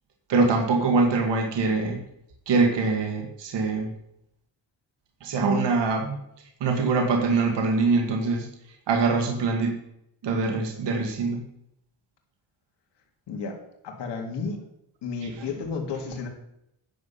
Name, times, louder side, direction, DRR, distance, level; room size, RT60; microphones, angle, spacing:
voice 1, 0.3-2.0 2.5-3.9 5.2-6.2 6.6-8.5 8.9-9.8 10.2-11.5 15.4-15.5, right 3 dB, 65° right, 2 dB, 1.8 m, -23 dB
voice 2, 13.8-14.6 15.0-16.3, left 5 dB, 65° left, 2 dB, 2.0 m, -32 dB
9.4 x 7.3 x 5.6 m, 0.78 s
cardioid pair, 170°, 45 cm